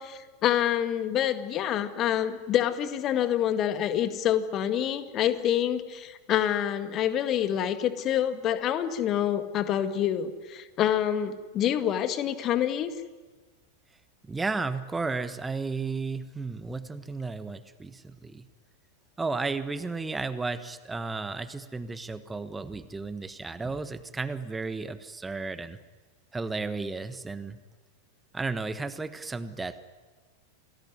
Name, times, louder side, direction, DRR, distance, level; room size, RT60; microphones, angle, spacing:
voice 1, 0.0-12.9, left 10 dB, 35° left, 9 dB, 1.9 m, -27 dB
voice 2, 14.2-18.4 19.2-25.8 26.3-27.6 28.3-29.8, right 3 dB, 10° right, 12 dB, 1.2 m, -33 dB
28.5 x 20.0 x 9.6 m, 1.3 s
figure-of-eight pair, 90°, 0 cm